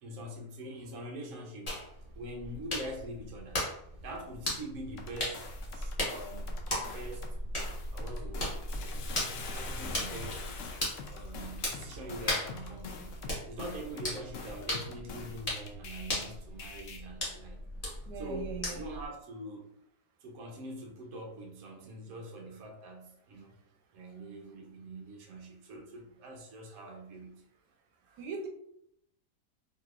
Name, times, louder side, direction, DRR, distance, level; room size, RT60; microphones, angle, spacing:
voice 1, 0.0-1.8 2.1-3.6 4.0-7.3 7.9-8.7 9.5-10.6 11.0-17.6 18.2-19.7 20.2-23.5 23.9-27.4 28.1-28.2, right 1 dB, 65° right, 0 dB, 1.1 m, -44 dB
sound 1, 1.7-19.1, left 1 dB, 25° left, 0.9 m, -38 dB
sound 2, 5.0-7.3 7.6-16.3 16.6-17.0, left 5 dB, 65° left, 0.8 m, -46 dB
Bathtub (filling or washing), 8.6-13.2 13.7-13.8, left 4 dB, 90° left, 1.2 m, -45 dB
voice 2, 18.1-19.0 28.2-28.5, right 5 dB, 85° right, 2 dB, 1.2 m, -40 dB
3.9 x 2.8 x 2.3 m, 0.73 s
omnidirectional pair, 1.8 m